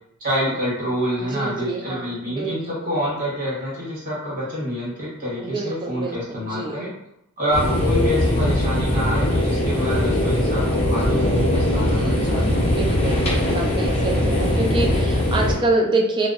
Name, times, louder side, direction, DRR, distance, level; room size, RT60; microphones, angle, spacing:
voice 1, 0.2-6.9 7.4-12.6, equal, 40° right, -7 dB, 1.2 m, -27 dB
voice 2, 1.2-2.5 5.4-6.8 12.0-16.3, right 2 dB, 20° right, 0 dB, 0.3 m, -26 dB
sound 1, 7.5-15.5, left 1 dB, 30° left, 0.5 m, -20 dB
2.6 x 2.0 x 2.3 m, 0.78 s
head